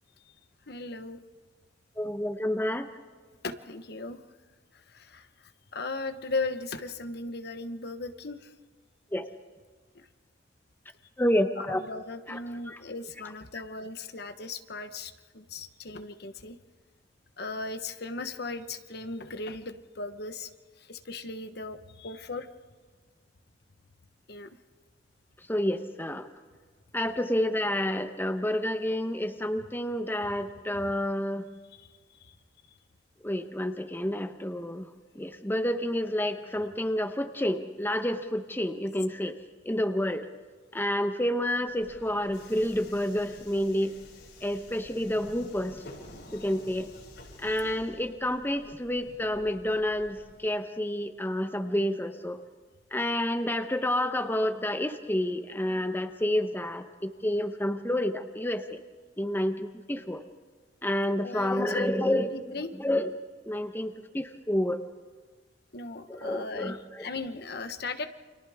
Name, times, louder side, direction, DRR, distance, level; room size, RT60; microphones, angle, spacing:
voice 1, 0.7-1.2 3.4-4.2 4.9-5.3 5.7-8.5 9.9-10.1 11.6-16.6 17.4-20.5 20.8-22.5 24.3-24.5 31.8-32.3 61.2-61.9 62.3-62.7 65.7-68.1, left 3 dB, 65° left, 9 dB, 1.2 m, -37 dB
voice 2, 2.0-2.9 9.1-9.3 11.2-11.8 12.3-12.4 12.7-12.8 25.5-26.3 26.9-31.4 33.2-34.9 35.2-39.3 39.7-40.2 40.7-43.9 44.4-45.8 46.3-46.9 47.4-52.4 52.9-58.8 59.2-60.2 60.8-63.1 63.5-64.8 66.1-67.1, left 1 dB, 10° left, 7 dB, 1.0 m, -29 dB
Subway metro underground, 41.7-50.4, left 1 dB, 90° left, 6.4 m, -50 dB
29.5 x 25.5 x 3.6 m, 1.5 s
head